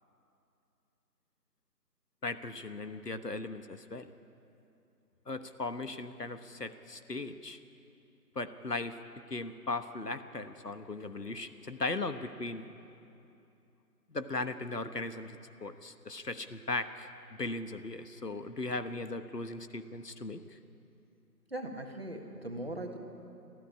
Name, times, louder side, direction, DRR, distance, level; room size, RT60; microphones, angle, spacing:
voice 1, 2.2-4.1 5.3-7.6 8.3-9.0 9.3-12.7 14.1-17.1 17.4-20.6, left 3 dB, 70° left, 10 dB, 1.3 m, -38 dB
voice 2, 21.5-23.0, right 1 dB, 35° right, 3 dB, 1.9 m, -39 dB
25.5 x 14.0 x 9.9 m, 2.8 s
figure-of-eight pair, 165°, 49 cm